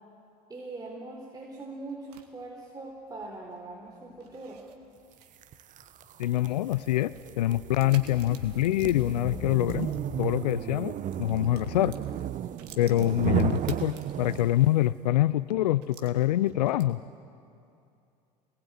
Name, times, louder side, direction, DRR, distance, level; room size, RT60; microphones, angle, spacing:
voice 1, 0.5-4.6, right 2 dB, 20° right, -2 dB, 4.3 m, -41 dB
sound 1, 1.4-10.6 10.9-14.8 15.2-15.3 15.8-17.1, right 8 dB, 65° right, 2.4 m, -54 dB
sound 2, 5.0-5.2 5.5-14.4, left 9 dB, 30° left, 0.6 m, -46 dB
sound 3, 5.4-14.8, right 11 dB, 40° right, 0.8 m, -34 dB
voice 2, 6.2-9.9 10.2-12.0 12.8-17.0, left 14 dB, 75° left, 17 dB, 0.5 m, -25 dB
27.5 x 20.5 x 9.2 m, 2.6 s
hypercardioid pair, 70°, 21 cm